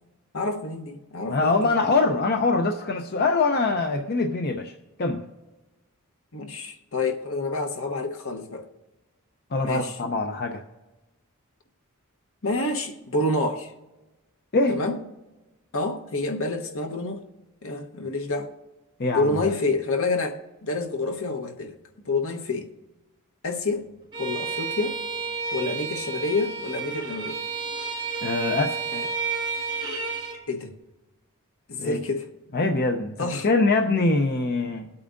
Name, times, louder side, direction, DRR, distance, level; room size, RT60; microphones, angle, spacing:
voice 1, 0.3-1.7 6.3-8.6 9.6-10.0 12.4-13.7 14.7-15.0 15.7-17.2 17.6-18.5 19.1-21.7 22.0-22.7 23.4-23.9 24.2-25.0 25.5-27.4 28.9-29.1 30.5-30.7 31.7-32.3 33.2-33.5, left 2 dB, 65° left, 5 dB, 1.1 m, -28 dB
voice 2, 1.3-4.7 5.0-5.2 9.5-10.6 14.5-14.8 19.0-19.4 28.2-28.8 31.8-32.0 32.5-33.1 33.4-34.9, left 3 dB, 45° left, 4 dB, 0.6 m, -23 dB
Bowed string instrument, 24.1-30.4, right 5 dB, 20° right, 1.8 m, -31 dB
21.5 x 8.6 x 2.6 m, 1.1 s
head